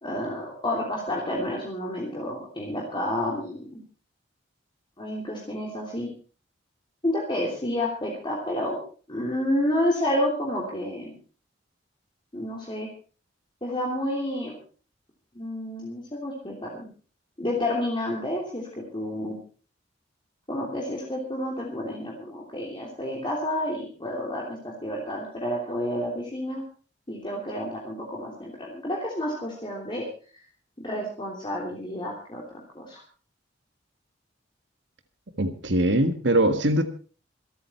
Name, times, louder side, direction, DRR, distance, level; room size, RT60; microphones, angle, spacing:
voice 1, 0.0-3.8 5.0-6.1 7.0-8.8 9.1-11.1 12.3-12.9 13.6-14.5 15.3-16.9 17.4-19.4 20.5-26.6 27.1-30.1 30.3-30.5 30.8-32.4 32.7-33.0, left 1 dB, 25° left, -2 dB, 3.1 m, -30 dB
voice 2, 35.4-36.8, right 1 dB, 65° right, 8 dB, 1.6 m, -22 dB
26.0 x 9.2 x 4.5 m, 0.40 s
head